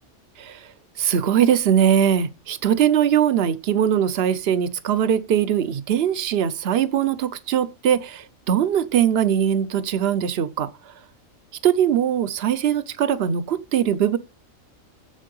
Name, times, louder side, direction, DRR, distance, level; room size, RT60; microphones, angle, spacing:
voice 1, 0.4-0.7 1.0-10.7 11.6-14.2, right 9 dB, 55° right, 0.9 m, -21 dB
7.5 x 7.4 x 5.4 m
omnidirectional pair, 1.4 m